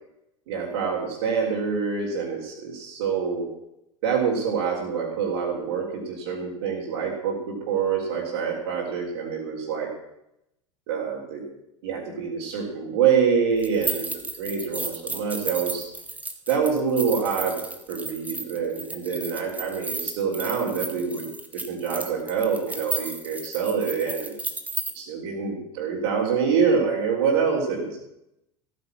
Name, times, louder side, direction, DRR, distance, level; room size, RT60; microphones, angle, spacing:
voice 1, 0.5-3.5 4.0-9.9 10.9-11.5 11.8-15.8 16.5-17.6 17.9-21.3 21.5-24.3 24.9-28.0, right 6 dB, 55° right, -6 dB, 3.9 m, -26 dB
sound 1, 13.6-24.9, right 3 dB, 10° right, 1.6 m, -34 dB
15.5 x 9.6 x 6.1 m, 0.81 s
figure-of-eight pair, 75°, 16 cm